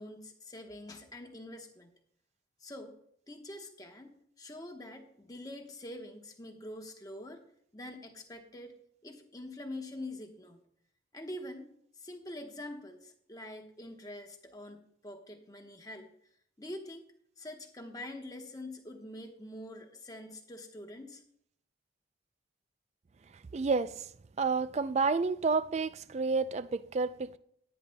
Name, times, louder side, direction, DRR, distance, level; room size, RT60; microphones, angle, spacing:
voice 1, 0.0-1.9 2.6-3.0 3.3-7.4 7.7-8.7 9.0-10.6 11.1-11.7 12.0-16.1 16.6-17.1 17.4-21.2, left 1 dB, 20° left, 1.0 m, -45 dB
voice 2, 23.5-24.1 24.4-27.4, right 4 dB, 35° right, 0.3 m, -30 dB
17.5 x 9.8 x 2.2 m
head